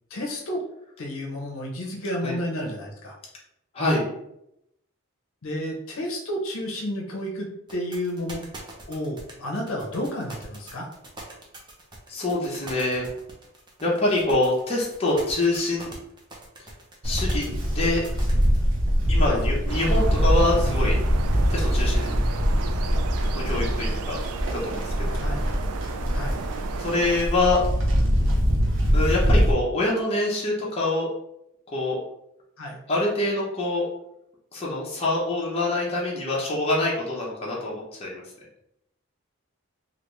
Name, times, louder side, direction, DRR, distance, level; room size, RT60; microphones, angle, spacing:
voice 1, 0.1-0.6 1.0-3.2 5.4-8.4 8.9-10.9 19.3-19.4 25.2-25.5 26.1-26.4 32.6-32.8, equal, 65° left, 0 dB, 0.7 m, -31 dB
voice 2, 3.7-4.1 12.1-13.1 13.8-15.9 17.0-18.0 19.1-21.0 21.5-22.2 23.3-24.2 24.5-25.2 26.8-27.6 28.9-31.1 31.7-32.0 32.9-33.9 34.5-38.2, left 2 dB, 25° left, -4 dB, 0.7 m, -25 dB
sound 1, 7.7-18.6, right 2 dB, 20° right, 0.5 m, -42 dB
Livestock farm animals working animals, 17.0-29.5, equal, 55° right, 0.7 m, -23 dB
sound 2, 19.7-27.2, right 6 dB, 80° right, 0.3 m, -35 dB
3.3 x 2.5 x 3.0 m, 0.80 s
head